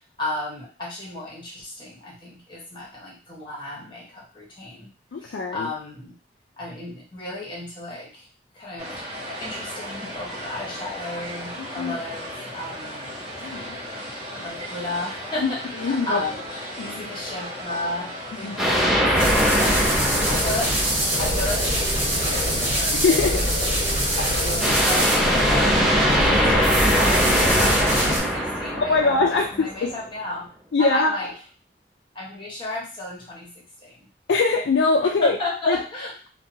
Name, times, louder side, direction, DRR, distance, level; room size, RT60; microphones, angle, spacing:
voice 1, 0.2-4.9 5.2-6.1 6.6-8.3 8.5-8.9 9.4-13.2 14.3-16.4 16.9-20.8 21.2-23.3 24.2-30.5 30.8-31.3 32.1-34.1 35.0-36.1, left 2 dB, 25° left, -4 dB, 1.0 m, -34 dB
voice 2, 5.1-5.7 11.6-11.9 13.4-13.8 15.4-15.5 15.8-16.2 16.8-17.1 18.4-18.6 23.0-23.4 28.8-29.9 30.7-31.2 34.3-35.4 35.7-35.8, left 3 dB, 75° left, 2 dB, 0.4 m, -22 dB
sound 1, 8.8-24.6, equal, 30° right, 1.1 m, -36 dB
sound 2, 18.6-21.7 24.6-29.8, equal, ahead, 0.6 m, -22 dB
sound 3, 19.1-28.2, equal, 45° right, 1.3 m, -24 dB
2.7 x 2.2 x 2.6 m, 0.37 s
head